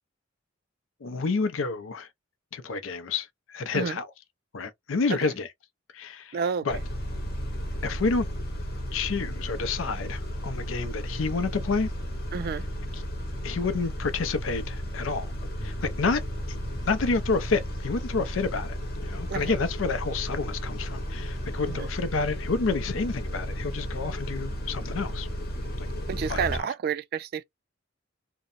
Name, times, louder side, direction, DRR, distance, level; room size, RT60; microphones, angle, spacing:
voice 1, 1.0-2.1 2.5-4.1 4.5-5.5 5.9-6.4 6.6-6.8 7.8-8.3 8.9-11.9 13.4-15.3 15.6-16.2 16.8-18.8 19.0-25.3 25.8-25.9 26.3-26.5, left 4 dB, 75° left, 0.5 m, -29 dB
voice 2, 6.3-6.7 12.3-12.7 19.3-19.5 21.7-21.9 26.1-27.4, right 6 dB, 50° right, 0.3 m, -30 dB
Car / Idling / Accelerating revving vroom, 6.7-26.6, equal, 50° left, 0.9 m, -34 dB
sound 1, 15.6-21.8, equal, 20° left, 0.8 m, -48 dB
2.7 x 2.1 x 2.4 m
head